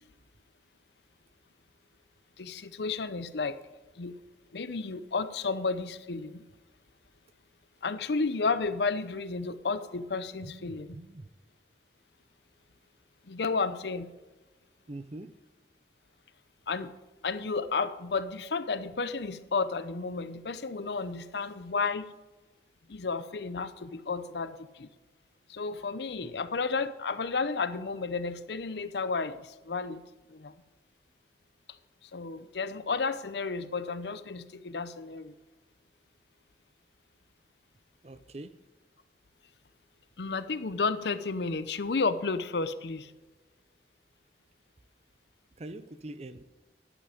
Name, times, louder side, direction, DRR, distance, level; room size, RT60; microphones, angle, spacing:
voice 1, 2.4-3.6 4.0-4.2 4.5-6.4 7.8-11.0 13.2-14.1 16.7-16.9 17.2-22.1 22.9-24.9 25.5-30.5 32.0-35.3 40.2-43.1, left 4 dB, 75° left, 13 dB, 0.7 m, -32 dB
voice 2, 10.4-11.3 14.9-15.3 26.2-26.4 38.0-38.5 45.6-46.4, right 2 dB, 35° right, 13 dB, 0.6 m, -43 dB
11.5 x 11.0 x 5.1 m, 1.2 s
head